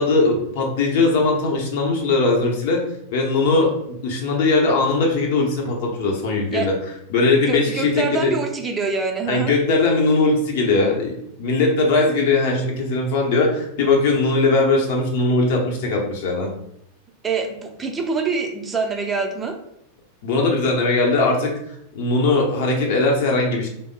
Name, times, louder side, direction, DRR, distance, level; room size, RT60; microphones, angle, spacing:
voice 1, 0.0-2.8 3.1-6.7 7.1-8.3 9.3-16.5 20.2-21.6 21.9-23.7, left 3 dB, 50° left, 0 dB, 0.9 m, -20 dB
voice 2, 7.5-9.5 17.2-19.5, right 4 dB, 15° right, 3 dB, 0.6 m, -25 dB
3.4 x 2.0 x 3.9 m, 0.76 s
figure-of-eight pair, 90°, 0 cm